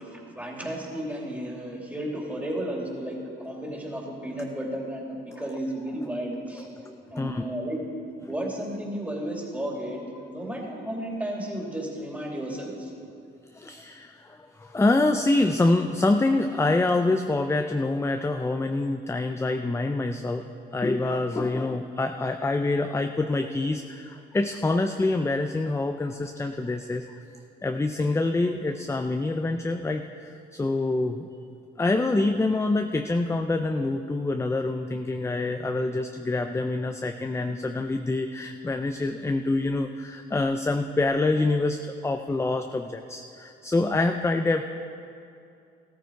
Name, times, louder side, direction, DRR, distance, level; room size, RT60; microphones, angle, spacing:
voice 1, 0.0-6.7 7.1-7.8 8.3-10.0 10.3-12.9, right 1 dB, 5° right, -2 dB, 2.9 m, -33 dB
voice 2, 6.8-7.4 13.5-20.5 20.7-27.1 27.6-31.3 31.8-44.6, left 2 dB, 15° left, 6 dB, 0.5 m, -26 dB
14.0 x 13.5 x 4.6 m, 2.6 s
cardioid pair, 90°, 20 cm